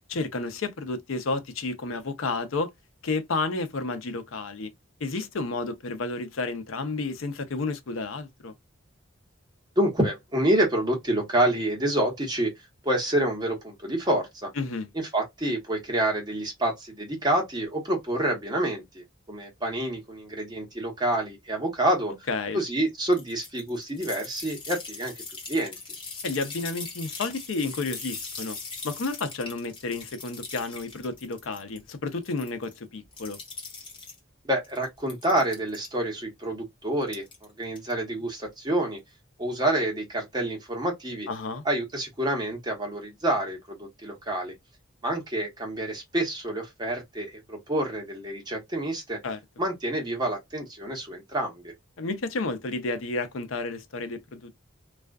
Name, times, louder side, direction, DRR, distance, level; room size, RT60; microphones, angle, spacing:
voice 1, 0.1-2.7 3.0-4.7 5.0-8.5 14.6-14.9 22.3-22.6 26.2-28.6 28.8-33.4 41.3-41.6 49.2-49.4 52.0-54.6, left 3 dB, 80° left, 0.6 m, -31 dB
voice 2, 9.8-12.5 12.8-14.5 14.9-22.1 22.5-25.2 25.5-25.8 34.4-37.2 37.6-39.0 39.4-41.3 41.6-44.5 45.0-49.2 49.6-51.7, right 1 dB, 20° right, 1.0 m, -28 dB
sound 1, 23.1-31.8 32.1-32.8 33.1-34.2 34.6-35.9 37.0-37.4 37.8-37.9, left 4 dB, 25° left, 1.0 m, -40 dB
2.4 x 2.3 x 2.2 m
head